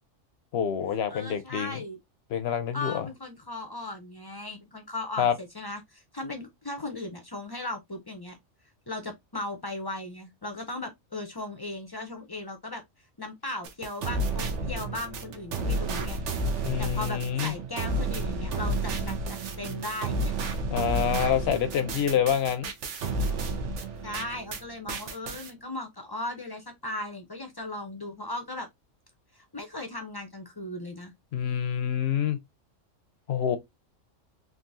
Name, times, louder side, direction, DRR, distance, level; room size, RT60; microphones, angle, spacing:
voice 1, 0.5-1.8 2.3-3.1 5.2-5.3 16.6-17.5 20.7-22.7 31.3-32.4 33.3-33.6, left 8 dB, 60° left, 0.7 m, -27 dB
voice 2, 1.1-2.0 2.7-8.4 8.9-12.8 13.2-16.2 16.8-20.3 24.0-28.7 29.4-31.1, left 2 dB, 35° left, 0.3 m, -37 dB
sound 1, 13.6-24.6 24.9-25.5, right 2 dB, 70° right, 0.9 m, -31 dB
3.6 x 2.6 x 2.6 m
omnidirectional pair, 1.3 m